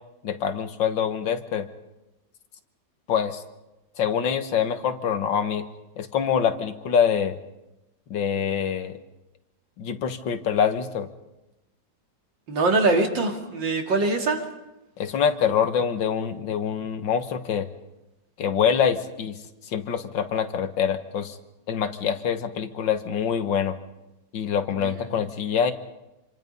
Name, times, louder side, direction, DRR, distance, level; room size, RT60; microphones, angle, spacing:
voice 1, 0.2-1.7 3.1-3.4 4.0-5.7 6.0-7.4 8.1-9.0 9.8-11.1 15.0-17.7 18.4-19.4 19.7-21.4 21.7-23.8 24.3-25.7, left 7 dB, 85° left, 9 dB, 2.1 m, -25 dB
voice 2, 12.5-14.5 24.8-24.9, right 3 dB, 85° right, 4 dB, 3.2 m, -23 dB
27.0 x 25.5 x 5.4 m, 0.96 s
omnidirectional pair, 2.0 m